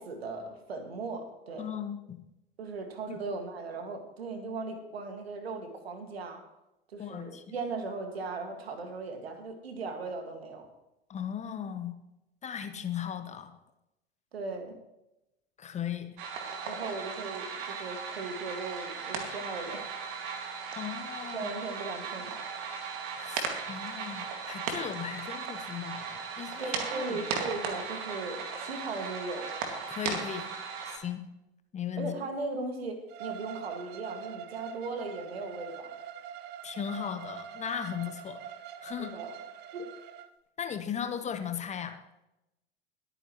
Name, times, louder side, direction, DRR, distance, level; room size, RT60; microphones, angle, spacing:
voice 1, 0.0-1.7 2.6-6.4 6.9-10.7 14.3-14.8 16.7-20.3 21.3-22.5 26.6-29.5 32.0-35.9 39.0-39.3 39.7-39.9, right 3 dB, 70° right, 5 dB, 2.2 m, -38 dB
voice 2, 1.6-2.2 3.1-3.2 7.0-7.4 11.1-12.0 12.4-13.5 15.6-16.2 16.5-16.6 20.8-21.5 23.1-27.2 29.9-30.5 30.9-31.2 31.7-32.1 36.6-38.4 38.8-39.1 40.6-41.9, left 8 dB, 20° left, 8 dB, 1.0 m, -37 dB
sound 1, 16.2-31.0, right 5 dB, 50° right, 2.4 m, -37 dB
Bowed string instrument, 33.1-40.3, right 9 dB, 35° right, 0.7 m, -44 dB
21.5 x 9.1 x 3.2 m, 0.91 s
figure-of-eight pair, 85°, 32 cm